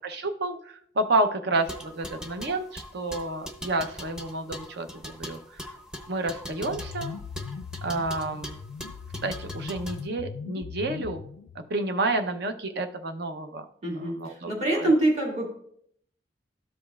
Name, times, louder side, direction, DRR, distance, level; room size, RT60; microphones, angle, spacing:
voice 1, 0.0-5.4 6.1-7.1 7.8-8.6 9.2-11.2 11.7-13.6 14.0-14.5 14.7-14.9, right 2 dB, 60° right, 7 dB, 0.7 m, -30 dB
sound 1, 1.6-10.0, equal, 5° right, 0.7 m, -41 dB
sound 2, 6.6-11.7, left 5 dB, 85° left, 0.3 m, -39 dB
voice 2, 13.8-15.5, right 2 dB, 35° right, -2 dB, 2.3 m, -25 dB
13.0 x 5.2 x 2.4 m, 0.66 s
head